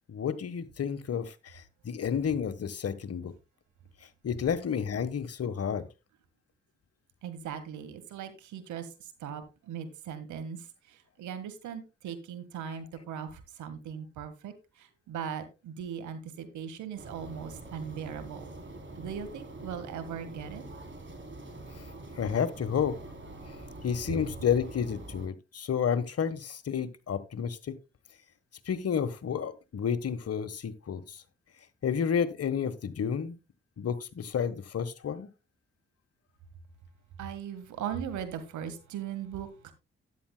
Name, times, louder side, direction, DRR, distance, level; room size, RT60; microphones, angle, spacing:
voice 1, 0.1-3.3 4.2-5.9 22.2-23.0 23.8-27.7 28.7-31.2 31.8-33.4 33.8-35.3, left 7 dB, 55° left, 1.3 m, -31 dB
voice 2, 7.2-8.9 9.2-14.5 14.8-18.5 19.0-20.6 37.2-39.7, right 8 dB, 80° right, 1.6 m, -39 dB
sound 1, 17.0-25.3, right 2 dB, 40° right, 3.4 m, -45 dB
13.0 x 10.0 x 2.2 m
hypercardioid pair, 45°, 30 cm